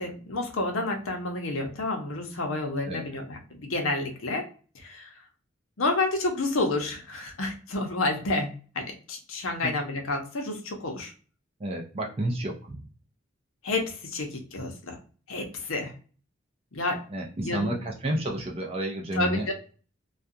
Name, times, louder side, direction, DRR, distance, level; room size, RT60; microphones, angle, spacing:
voice 1, 0.0-4.5 4.7-5.1 5.8-11.1 13.6-15.0 15.3-15.9 16.7-17.0 17.4-17.8 19.1-19.5, left 2 dB, 80° left, 2 dB, 0.7 m, -30 dB
voice 2, 11.6-12.8 17.1-19.5, right 1 dB, 30° right, 0 dB, 0.5 m, -30 dB
2.4 x 2.2 x 2.6 m, 0.39 s
head